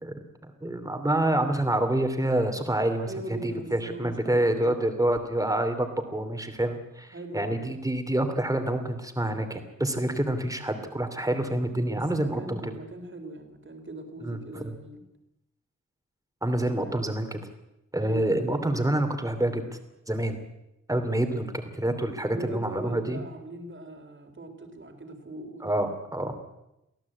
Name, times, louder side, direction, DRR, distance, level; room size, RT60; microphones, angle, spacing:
voice 1, 0.6-3.1 3.4-12.6 14.2-14.6 16.4-17.4 17.9-19.6 20.1-20.4 20.9-23.2 25.6-26.3, right 1 dB, 10° right, 7 dB, 2.9 m, -27 dB
voice 2, 3.0-4.8 7.1-7.7 11.9-15.0 18.0-18.5 22.3-26.2, right 1 dB, 40° right, 6 dB, 3.6 m, -40 dB
24.0 x 16.5 x 8.6 m, 0.88 s
wide cardioid pair, 140°, 31 cm